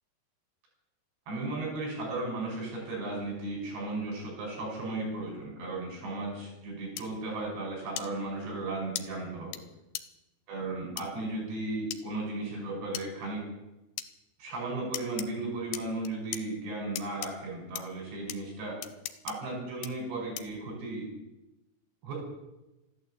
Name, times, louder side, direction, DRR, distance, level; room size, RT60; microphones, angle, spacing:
voice 1, 1.3-9.6 10.5-13.4 14.4-18.8 19.2-21.1 22.0-22.1, right 2 dB, 80° right, -1 dB, 7.7 m, -35 dB
sound 1, 7.0-7.1 8.0-8.1 9.0-9.1 9.5-9.6 9.9-10.0 11.0-11.1 11.9-12.0 12.9-13.1 14.0-14.1 14.9-15.3 15.7-16.4 17.0-17.3 17.8-17.9 18.3-18.4 18.8-19.3 19.8-19.9 20.4-20.6, left 12 dB, 80° left, 3.0 m, -37 dB
13.5 x 12.0 x 8.3 m, 0.97 s
omnidirectional pair, 5.0 m